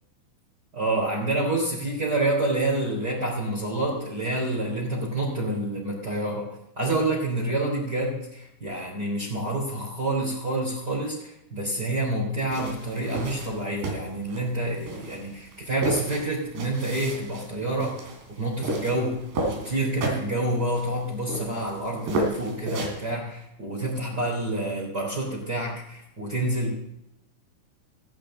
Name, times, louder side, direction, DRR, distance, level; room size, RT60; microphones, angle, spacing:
voice 1, 0.7-6.5 6.8-26.7, right 1 dB, 25° right, -4 dB, 3.7 m, -28 dB
sound 1, 12.5-23.1, right 2 dB, 80° right, 5.3 m, -33 dB
17.0 x 15.0 x 3.9 m, 0.84 s
omnidirectional pair, 4.9 m